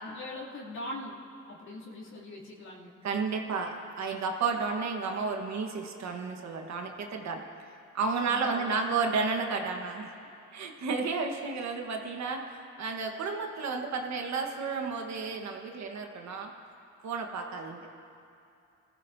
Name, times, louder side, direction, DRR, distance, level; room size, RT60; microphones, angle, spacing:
voice 1, 0.0-1.2 1.5-3.0 8.2-8.7 11.0-11.1, left 1 dB, 65° left, -7 dB, 2.8 m, -41 dB
voice 2, 3.0-7.4 7.9-10.1 10.5-16.5 17.0-17.9, right 4 dB, 65° right, 3 dB, 1.4 m, -32 dB
20.5 x 15.0 x 2.7 m, 2.6 s
cardioid pair, 90°, 30 cm